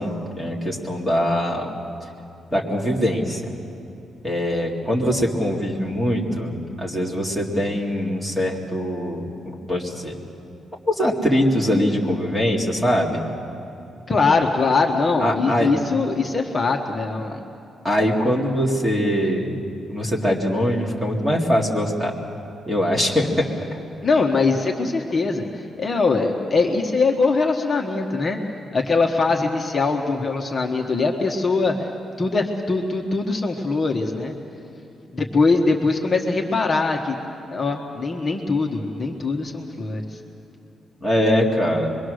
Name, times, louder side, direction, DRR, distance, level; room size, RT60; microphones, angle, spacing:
voice 1, 0.0-1.8 2.5-3.4 4.2-10.2 10.9-13.2 15.2-15.7 17.8-19.6 19.9-22.2 22.7-23.5 41.0-42.0, equal, 5° right, -2 dB, 2.3 m, -22 dB
voice 2, 14.1-17.4 24.0-28.4 28.7-31.9 32.2-34.3 35.1-37.1 37.5-40.2, left 3 dB, 25° left, 1 dB, 1.2 m, -22 dB
25.0 x 22.5 x 6.4 m, 2.7 s
wide cardioid pair, 175°, 0 cm